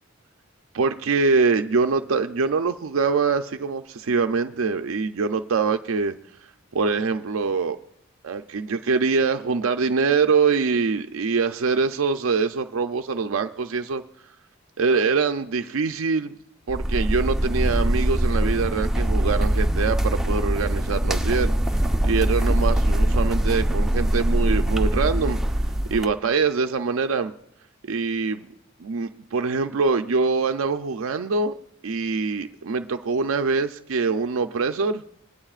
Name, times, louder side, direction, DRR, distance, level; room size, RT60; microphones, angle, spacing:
voice 1, 0.7-6.1 6.7-7.8 8.2-14.0 14.8-16.3 16.7-25.4 25.9-27.3 27.9-28.5 28.8-31.6 31.8-35.0, right 4 dB, 90° right, 7 dB, 0.5 m, -24 dB
sound 1, 16.7-26.1, right 1 dB, ahead, 0.8 m, -22 dB
26.0 x 19.5 x 2.4 m, 0.77 s
head